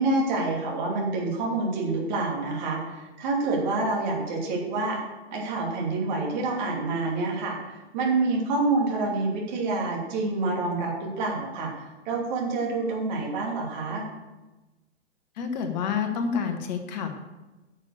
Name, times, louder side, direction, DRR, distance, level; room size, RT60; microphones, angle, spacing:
voice 1, 0.0-5.0 5.3-14.0, right 3 dB, 40° right, -1 dB, 2.8 m, -27 dB
voice 2, 15.4-17.1, left 6 dB, 40° left, 6 dB, 1.5 m, -28 dB
9.4 x 6.6 x 6.6 m, 1.1 s
figure-of-eight pair, 120°, 34 cm